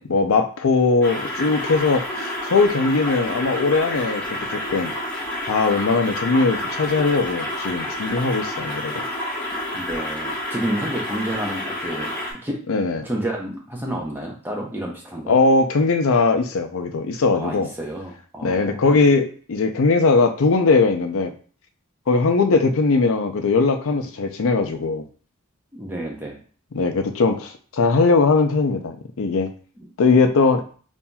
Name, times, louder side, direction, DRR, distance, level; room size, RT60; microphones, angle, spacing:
voice 1, 0.1-4.9 5.5-9.0 12.7-13.1 15.3-17.7 18.4-21.3 22.1-25.0 26.7-29.5 30.0-30.6, left 4 dB, 65° left, 6 dB, 0.5 m, -20 dB
sound 1, 1.0-12.3, left 1 dB, 10° left, 1.3 m, -29 dB
voice 2, 9.7-12.1 12.4-12.6 13.0-15.4 17.3-18.8 25.7-26.4, right 1 dB, 10° right, -1 dB, 0.6 m, -30 dB
5.5 x 2.6 x 2.3 m, 0.42 s
head